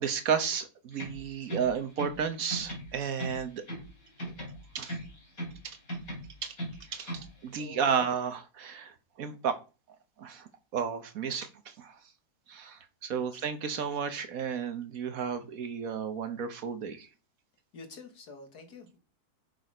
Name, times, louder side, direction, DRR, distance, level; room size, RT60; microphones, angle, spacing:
voice 1, 0.0-3.6 4.7-5.0 5.6-5.8 6.4-6.5 6.9-9.6 10.2-12.0 12.5-17.1, right 7 dB, 65° right, 1.4 m, -33 dB
sound 1, 0.9-2.2 2.5-3.9 4.2-5.6 5.9-7.3, right 1 dB, 60° left, 3.4 m, -39 dB
voice 2, 7.6-8.0 13.2-13.4 17.7-19.0, left 4 dB, 80° left, 2.2 m, -48 dB
6.9 x 6.1 x 5.0 m
omnidirectional pair, 1.7 m